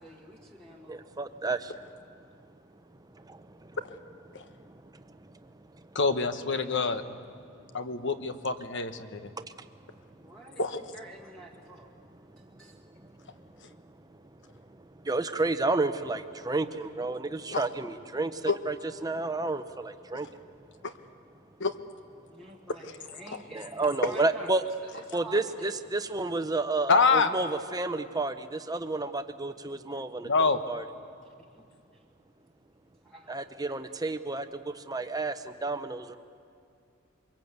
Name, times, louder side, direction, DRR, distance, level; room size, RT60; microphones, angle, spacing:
voice 1, 0.0-1.1 10.2-10.7 10.9-11.9 12.4-12.8 22.3-25.7 31.2-31.6 31.9-32.0 33.0-33.8, right 2 dB, 5° left, -2 dB, 1.6 m, -48 dB
voice 2, 0.9-1.7 3.1-3.7 4.5-5.8 9.4-9.7 12.6-13.5 14.7-18.8 19.0-20.4 23.5-24.6 25.1-30.8 33.3-36.2, right 3 dB, 15° right, 10 dB, 0.8 m, -31 dB
voice 3, 5.9-7.0 7.7-9.3 10.6-10.8 17.5-17.7 18.5-18.6 20.8-20.9 21.6-21.7 26.9-27.3 30.2-30.6, left 4 dB, 55° left, 9 dB, 1.2 m, -26 dB
24.5 x 22.5 x 8.2 m, 2.4 s
head